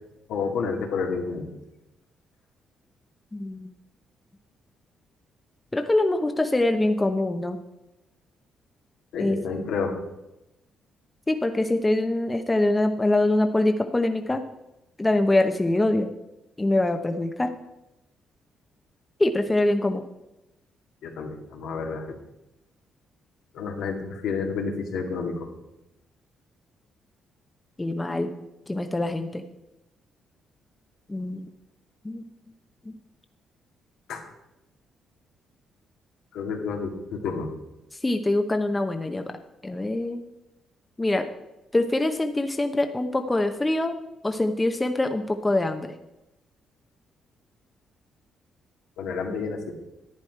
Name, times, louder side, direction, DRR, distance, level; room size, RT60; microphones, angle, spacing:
voice 1, 0.3-1.5 9.1-9.9 21.0-22.2 23.5-25.3 34.1-34.2 36.3-37.5 49.0-49.7, left 5 dB, 85° left, 1 dB, 2.0 m, -30 dB
voice 2, 3.3-3.7 5.7-7.6 9.2-9.4 11.3-14.4 15.0-16.1 16.6-17.5 19.2-20.0 27.8-28.3 28.7-29.4 31.1-31.5 32.0-32.2 38.0-39.2 39.6-40.2 41.0-41.3 41.7-43.9 44.2-45.9, left 2 dB, 15° left, 6 dB, 0.8 m, -24 dB
11.0 x 9.6 x 4.5 m, 0.93 s
cardioid pair, 90°, 0 cm